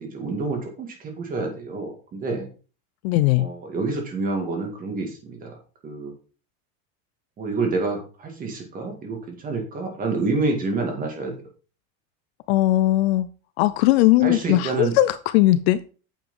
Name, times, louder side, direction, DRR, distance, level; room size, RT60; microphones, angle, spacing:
voice 1, 0.0-2.5 3.4-5.5 5.8-6.1 7.4-11.3 14.2-15.0, right 3 dB, 20° right, 3 dB, 2.3 m, -28 dB
voice 2, 3.0-3.5 12.5-13.3 13.6-15.9, left 16 dB, 50° left, 14 dB, 0.6 m, -19 dB
9.1 x 7.1 x 3.8 m, 0.36 s
supercardioid pair, 175°, 41 cm